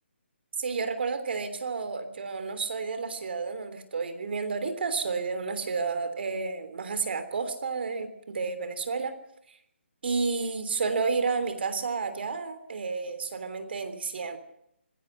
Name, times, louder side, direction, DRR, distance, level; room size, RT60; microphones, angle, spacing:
voice 1, 0.6-9.1 9.5-9.6 10.0-14.4, right 4 dB, 55° right, 10 dB, 3.3 m, -31 dB
20.5 x 16.5 x 7.7 m, 0.76 s
figure-of-eight pair, 145°, 7 cm